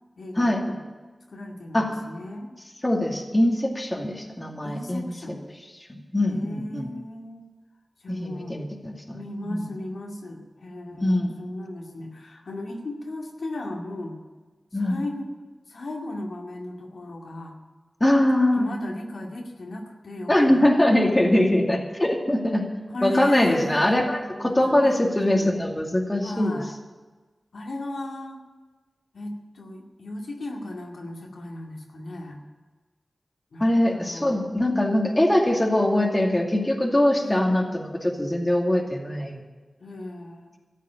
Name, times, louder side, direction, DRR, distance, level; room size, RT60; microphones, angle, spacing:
voice 1, 0.2-0.8 1.3-2.5 4.6-5.4 6.3-7.5 8.0-8.7 9.1-14.2 14.7-17.6 18.5-20.7 22.9-24.0 24.3-25.6 26.2-26.8 27.5-28.4 29.1-32.4 33.5-34.5 37.2-37.5 38.6-38.7 39.8-40.6, left 1 dB, 85° left, 0 dB, 2.2 m, -36 dB
voice 2, 2.8-5.1 5.9-6.9 8.1-9.2 9.4-9.7 11.0-11.4 14.7-15.0 18.0-18.7 20.3-22.6 23.0-26.6 33.6-39.4, left 1 dB, 20° left, 1 dB, 2.4 m, -22 dB
14.0 x 7.5 x 10.0 m, 1.3 s
wide cardioid pair, 60°, 0 cm